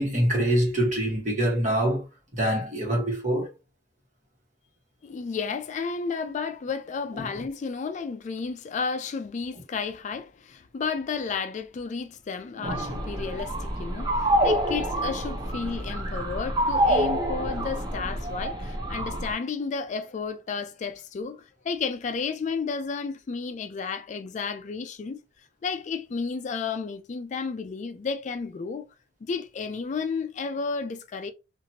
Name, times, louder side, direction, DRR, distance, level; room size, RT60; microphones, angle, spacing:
voice 1, 0.0-2.0 2.3-3.5 7.2-7.4 12.6-12.9, right 1 dB, 45° right, 1.4 m, -25 dB
voice 2, 5.0-25.2 25.6-28.9 29.2-31.3, left 5 dB, 45° left, 0.3 m, -32 dB
sound 1, 12.6-19.3, right 1 dB, 25° right, 0.6 m, -27 dB
2.9 x 2.5 x 2.8 m
head